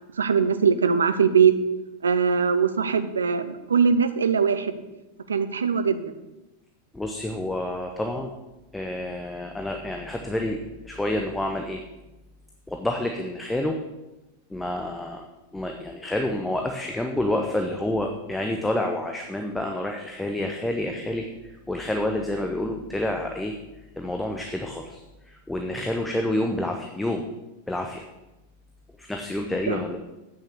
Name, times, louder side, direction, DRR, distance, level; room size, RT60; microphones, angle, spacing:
voice 1, 0.2-1.5 2.0-4.8 5.3-6.1 29.7-29.8, right 6 dB, 70° right, 11 dB, 0.6 m, -21 dB
voice 2, 6.9-8.3 8.7-10.6 10.8-11.8 12.7-13.8 14.5-15.3 15.5-21.3 21.7-23.6 24.0-25.0 25.5-27.2 27.7-28.0 29.0-30.0, left 1 dB, 5° left, 3 dB, 0.8 m, -28 dB
8.4 x 6.6 x 6.6 m, 1.0 s
figure-of-eight pair, 90°, 0 cm